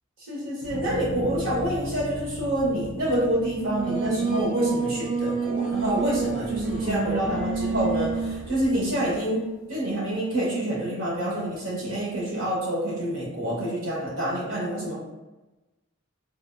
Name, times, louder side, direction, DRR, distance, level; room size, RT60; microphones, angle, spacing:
voice 1, 0.2-9.4 9.7-15.0, right 1 dB, 70° right, -4 dB, 1.0 m, -27 dB
sound 1, 0.6-6.9 7.4-8.0, left 1 dB, 60° left, 0.4 m, -38 dB
Singing, 3.6-8.4, right 5 dB, 25° right, 0.3 m, -28 dB
sound 2, 5.5-9.4, equal, 10° left, 0.7 m, -42 dB
3.4 x 2.7 x 2.4 m, 1.1 s
head